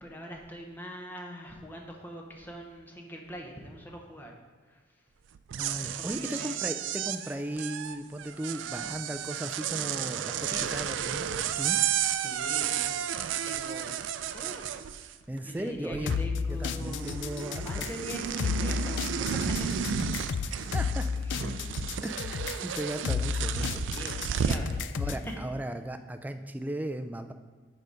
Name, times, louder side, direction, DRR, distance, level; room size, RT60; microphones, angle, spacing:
voice 1, 0.0-4.3 4.7-4.8 5.9-6.6 10.3-10.7 12.2-13.0 13.4-14.0 14.3-15.2 15.4-17.2 17.5-20.0 20.3-20.7 21.3-22.0 23.7-25.3, equal, 10° left, 1 dB, 0.9 m, -43 dB
sound 1, 5.4-15.4 15.7-16.4 16.6-24.7, right 9 dB, 85° right, 0.3 m, -32 dB
voice 2, 5.6-11.8 15.3-16.1 16.5-17.9 20.7-21.1 22.0-23.8 25.0-27.3, right 1 dB, 10° right, 7 dB, 0.3 m, -36 dB
sound 2, 16.1-25.3, left 6 dB, 75° left, 0.3 m, -33 dB
6.7 x 5.2 x 4.9 m, 1.4 s
head